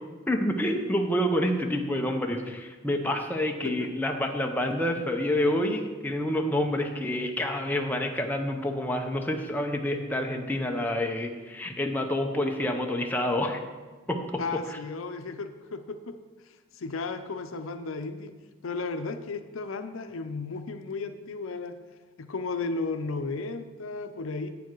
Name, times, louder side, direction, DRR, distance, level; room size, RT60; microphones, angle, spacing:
voice 1, 0.3-13.6 14.1-14.6, left 1 dB, 10° left, 2 dB, 0.6 m, -28 dB
voice 2, 14.4-16.2 16.8-18.3 18.6-21.7 22.2-24.5, left 3 dB, 75° left, 8 dB, 0.6 m, -34 dB
8.4 x 7.0 x 4.6 m, 1.3 s
head